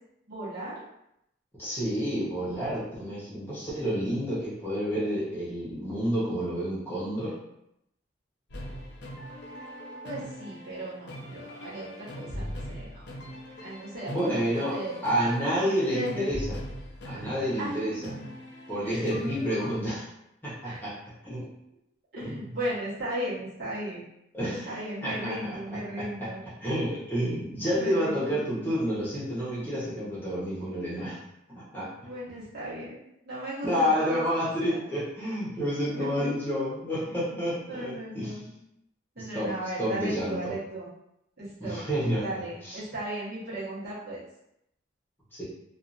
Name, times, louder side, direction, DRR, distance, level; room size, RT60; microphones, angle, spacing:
voice 1, 0.3-0.8 10.0-13.1 13.6-15.0 15.9-16.2 17.2-17.3 17.6-18.3 18.8-19.1 20.6-20.8 22.1-24.0 24.5-26.4 27.7-28.4 32.0-34.8 35.8-36.3 37.3-37.4 37.7-38.5 39.1-40.9 41.4-41.8 42.2-44.2, right 1 dB, 50° right, -9 dB, 1.2 m, -36 dB
voice 2, 1.6-7.4 14.1-16.5 17.0-18.1 18.7-20.0 20.4-21.0 21.2-21.5 22.2-22.6 24.3-25.6 26.0-31.2 31.5-31.9 33.6-38.4 39.2-40.5 41.6-42.8 45.3-45.4, equal, 10° left, -9 dB, 0.9 m, -30 dB
sound 1, 8.5-19.8, equal, 60° left, 0.6 m, -41 dB
2.7 x 2.4 x 2.5 m, 0.80 s
head